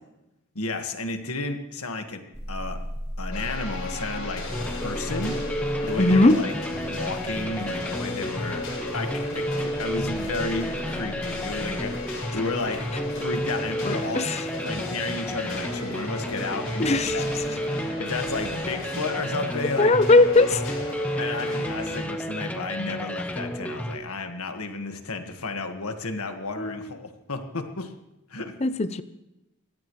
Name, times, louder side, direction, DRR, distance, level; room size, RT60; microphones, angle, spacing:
voice 1, 0.5-2.2 2.5-2.8 3.2-6.5 6.9-8.7 8.9-14.2 14.6-17.2 18.0-19.9 21.2-27.9 28.3-28.5, left 3 dB, 80° left, 6 dB, 1.7 m, -32 dB
sound 1, 2.3-13.5, equal, 45° right, 2.1 m, -39 dB
sound 2, 3.3-22.0, left 2 dB, 60° left, 7.2 m, -36 dB
sound 3, 4.5-24.0, equal, 5° left, 0.9 m, -31 dB
voice 2, 6.0-6.4 13.8-14.5 16.8-17.4 19.8-20.8 26.6-26.9 28.6-29.0, left 2 dB, 30° left, 13 dB, 0.6 m, -20 dB
23.0 x 16.5 x 3.2 m, 0.93 s
head